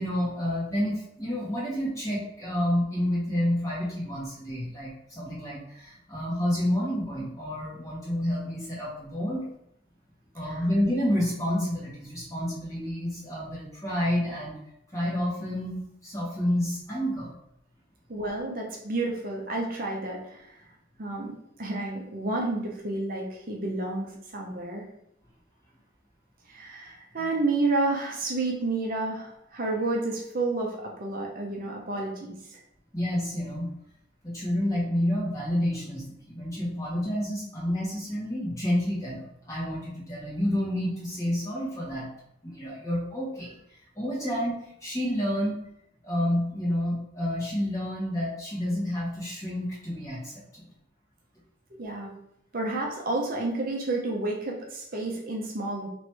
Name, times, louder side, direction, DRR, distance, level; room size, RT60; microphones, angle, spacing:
voice 1, 0.0-9.5 10.3-14.6 14.9-17.3 32.9-33.7 34.2-42.1 42.4-43.5 43.9-44.5 44.8-45.6 46.0-50.6, equal, 15° left, -7 dB, 1.5 m, -29 dB
voice 2, 18.1-20.6 21.0-24.8 26.5-32.6 51.7-52.1 52.5-55.9, right 2 dB, 45° right, -1 dB, 0.7 m, -30 dB
3.1 x 3.1 x 4.5 m, 0.76 s
head